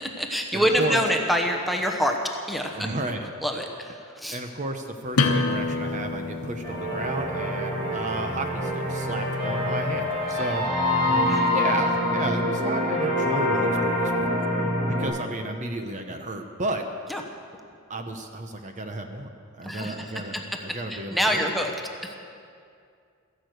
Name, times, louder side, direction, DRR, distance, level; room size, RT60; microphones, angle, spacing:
voice 1, 0.0-2.2 2.5-2.9 3.4-4.4 11.3-11.5 17.1-17.2 19.6-20.4 20.9-21.7 22.0-22.2, equal, ahead, 3 dB, 1.0 m, -26 dB
voice 2, 0.5-1.0 2.7-3.3 4.3-10.7 11.5-14.3 14.8-16.8 17.9-19.3 19.6-21.4, right 2 dB, 35° right, 5 dB, 0.9 m, -32 dB
sound 1, 5.1-10.5, left 3 dB, 80° left, 1.3 m, -30 dB
sound 2, 6.6-15.0, left 1 dB, 50° right, 4.2 m, -25 dB
14.5 x 11.5 x 7.9 m, 2.3 s
head